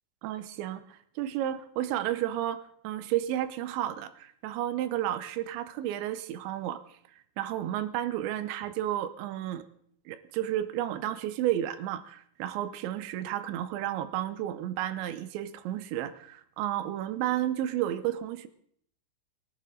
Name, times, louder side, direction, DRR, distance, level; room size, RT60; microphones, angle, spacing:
voice 1, 0.2-6.8 7.4-9.6 10.1-18.5, right 12 dB, 80° right, 13 dB, 3.0 m, -32 dB
22.5 x 11.0 x 3.8 m, 0.66 s
omnidirectional pair, 5.2 m